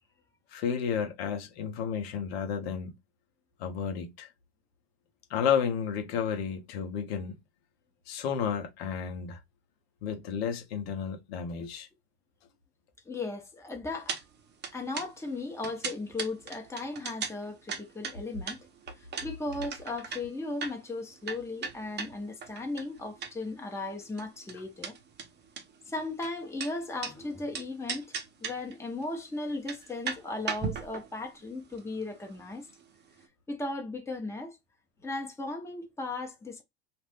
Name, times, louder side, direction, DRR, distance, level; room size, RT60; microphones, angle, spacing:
voice 1, 0.5-3.0 3.6-4.3 5.3-7.4 8.1-9.4 10.0-11.9, left 7 dB, 80° left, 1.0 m, -32 dB
voice 2, 13.1-14.2 14.7-18.6 19.2-25.0 25.9-32.7 33.5-34.6 35.0-36.6, left 2 dB, 10° left, 1.0 m, -36 dB
sound 1, 14.1-14.2 14.5-23.6 23.8-27.1 27.5-28.8 29.0-29.1 29.5-32.9 33.2-33.3, right 6 dB, 35° right, 0.9 m, -38 dB
2.5 x 2.5 x 3.4 m
supercardioid pair, 100°, 30 cm